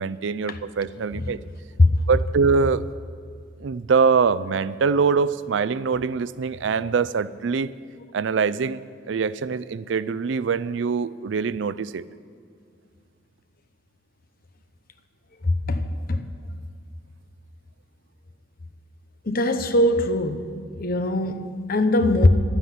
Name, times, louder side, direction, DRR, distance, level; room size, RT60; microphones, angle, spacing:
voice 1, 0.0-1.4 2.1-2.9 3.6-7.7 8.1-8.8 9.1-12.0, right 5 dB, 70° right, 17 dB, 0.4 m, -23 dB
voice 2, 15.7-16.3 19.3-20.4 20.8-22.3, left 1 dB, 50° left, 9 dB, 0.9 m, -21 dB
12.0 x 9.6 x 9.9 m, 2.2 s
head